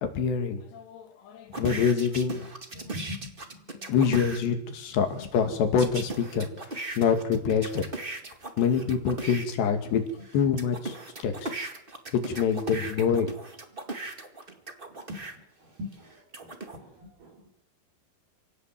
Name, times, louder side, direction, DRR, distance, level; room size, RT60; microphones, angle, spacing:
voice 1, 0.0-2.4 2.8-2.9 3.7-8.0 8.6-10.0 10.3-11.5 12.1-13.3, left 6 dB, 85° left, 6 dB, 4.6 m, -26 dB
sound 1, 1.5-4.4 5.8-9.4 10.1-15.4 15.9-16.8, right 2 dB, 35° right, 0.8 m, -37 dB
voice 2, 2.8-3.6 5.2-5.3 15.1-16.1 16.4-17.5, left 2 dB, 65° right, 5 dB, 7.2 m, -42 dB
28.5 x 18.5 x 7.7 m, 0.76 s
omnidirectional pair, 4.8 m